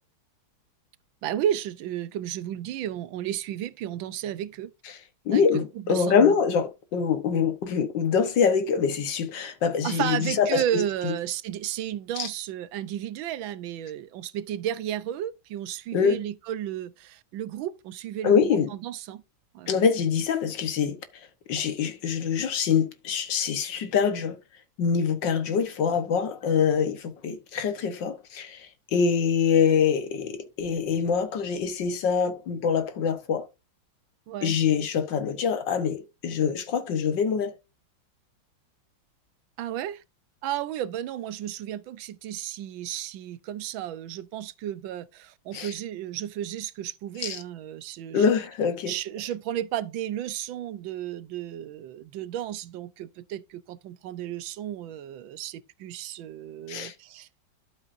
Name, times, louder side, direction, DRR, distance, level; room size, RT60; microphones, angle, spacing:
voice 1, 1.2-4.7 5.3-6.3 9.8-19.2 19.5-19.8 34.3-34.6 39.6-40.0 40.4-48.3 48.9-57.3, right 11 dB, 85° right, 1.5 m, -33 dB
voice 2, 5.3-11.1 12.2-12.3 15.9-16.2 18.2-18.7 19.7-21.0 21.5-24.4 24.8-33.5 34.4-37.5 45.5-45.7 47.2-47.4 48.1-48.9 56.7-56.9, left 6 dB, 70° left, 1.8 m, -24 dB
11.5 x 8.0 x 2.6 m
omnidirectional pair, 2.1 m